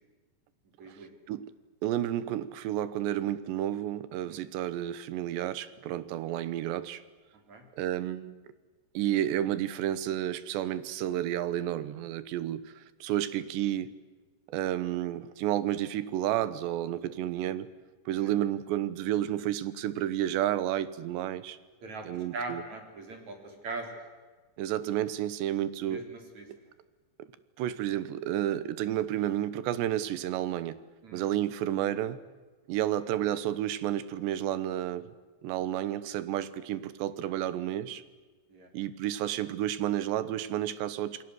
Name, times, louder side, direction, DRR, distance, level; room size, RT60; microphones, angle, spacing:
voice 1, 0.8-1.1 4.3-4.4 7.5-7.6 18.2-18.3 21.8-24.0 25.8-26.5 31.0-31.2 38.5-38.7, right 3 dB, 45° right, 4 dB, 4.8 m, -41 dB
voice 2, 1.8-7.0 7.8-8.4 8.9-13.9 14.5-17.7 18.1-21.6 22.0-22.6 24.6-26.1 26.5-26.6 27.2-27.3 27.6-30.8 31.1-32.2 32.7-35.1 35.4-38.0 38.7-41.2, right 12 dB, 85° right, 16 dB, 3.3 m, -31 dB
28.5 x 20.0 x 7.9 m, 1.3 s
omnidirectional pair, 5.0 m